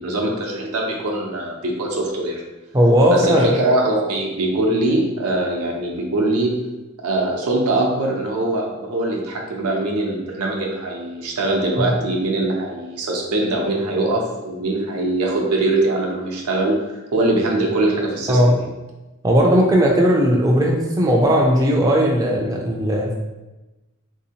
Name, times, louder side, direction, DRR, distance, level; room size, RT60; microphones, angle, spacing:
voice 1, 0.0-2.4 3.1-6.5 7.0-18.7, right 2 dB, 90° right, -1 dB, 0.6 m, -22 dB
voice 2, 2.7-3.5 11.8-11.9 18.3-18.6 19.2-23.1, equal, 15° right, -1 dB, 0.3 m, -16 dB
3.3 x 2.7 x 2.8 m, 1.1 s
head